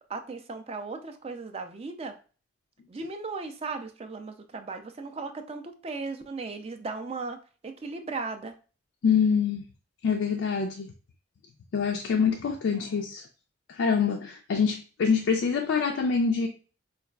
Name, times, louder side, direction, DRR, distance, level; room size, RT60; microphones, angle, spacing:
voice 1, 0.1-2.2 2.9-7.4 7.6-8.5, right 3 dB, 30° right, 0.3 m, -36 dB
voice 2, 9.0-9.6 10.0-10.9 11.7-13.2 13.7-16.5, left 6 dB, 65° left, 0.3 m, -25 dB
4.7 x 2.4 x 2.2 m
head